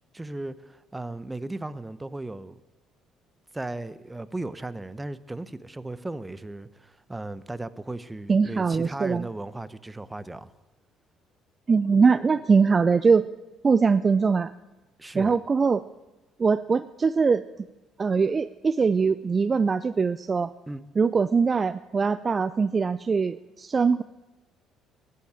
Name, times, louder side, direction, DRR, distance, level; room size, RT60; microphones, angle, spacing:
voice 1, 0.1-2.6 3.5-10.5 15.0-15.4 20.7-20.8, right 2 dB, 15° right, 0.9 m, -36 dB
voice 2, 8.3-9.3 11.7-13.3 13.6-14.5 15.1-15.8 16.4-17.4 18.0-20.5 21.0-24.0, right 5 dB, 35° right, 0.5 m, -22 dB
14.5 x 10.5 x 8.4 m
hypercardioid pair, 55°, 0 cm